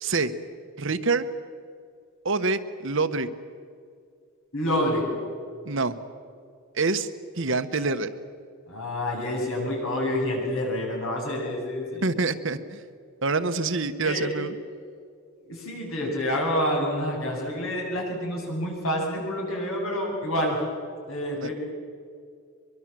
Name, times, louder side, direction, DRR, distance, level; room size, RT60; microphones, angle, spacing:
voice 1, 0.0-0.3 0.8-1.3 2.2-3.3 5.6-5.9 6.7-7.1 7.4-8.1 12.0-12.8 13.2-14.6 21.3-21.5, right 3 dB, 60° right, 10 dB, 1.2 m, -26 dB
voice 2, 4.5-5.1 8.7-12.0 14.0-14.3 15.4-20.6 21.1-21.5, left 1 dB, 70° left, -1 dB, 8.0 m, -28 dB
23.5 x 23.0 x 7.6 m, 2.3 s
head